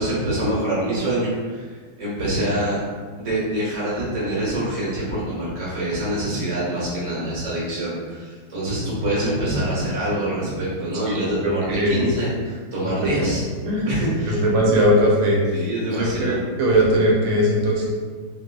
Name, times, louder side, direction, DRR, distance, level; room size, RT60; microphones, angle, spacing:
voice 1, 0.0-2.8 3.2-13.4 13.8-14.4 15.5-16.4, right 1 dB, 35° right, -8 dB, 0.5 m, -25 dB
voice 2, 11.4-12.0 13.6-15.4 15.9-17.9, equal, 80° right, -3 dB, 1.5 m, -19 dB
4.0 x 2.4 x 2.3 m, 1.5 s
omnidirectional pair, 2.4 m